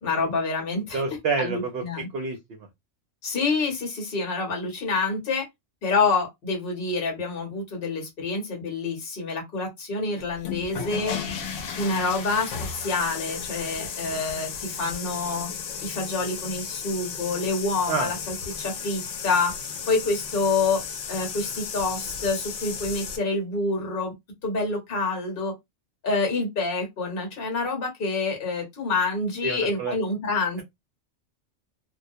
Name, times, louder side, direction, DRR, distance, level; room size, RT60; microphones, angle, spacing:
voice 1, 0.0-1.0 1.4-2.1 3.2-5.5 5.8-11.2 11.8-15.5 15.8-19.5 19.9-20.8 21.1-24.1 24.4-25.5 26.0-30.6, left 3 dB, 50° left, 1.1 m, -27 dB
voice 2, 0.9-1.8 2.1-2.7 17.9-18.1 29.4-29.9, right 4 dB, 60° right, 0.7 m, -28 dB
sound 1, 10.3-23.2, left 6 dB, 80° left, 0.9 m, -34 dB
2.3 x 2.1 x 2.6 m
omnidirectional pair, 1.3 m